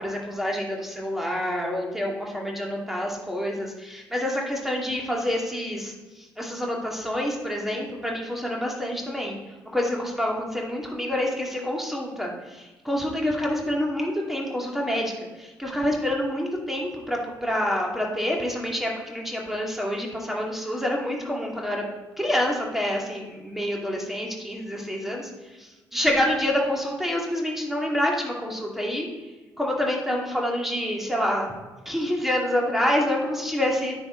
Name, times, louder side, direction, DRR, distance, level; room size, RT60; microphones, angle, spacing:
voice 1, 0.0-5.9 6.4-9.4 9.7-15.1 15.4-21.8 22.2-25.3 25.6-29.1 29.6-31.5 31.9-33.9, left 1 dB, ahead, -1 dB, 2.3 m, -27 dB
9.4 x 6.3 x 3.8 m, 1.2 s
figure-of-eight pair, 45°, 11 cm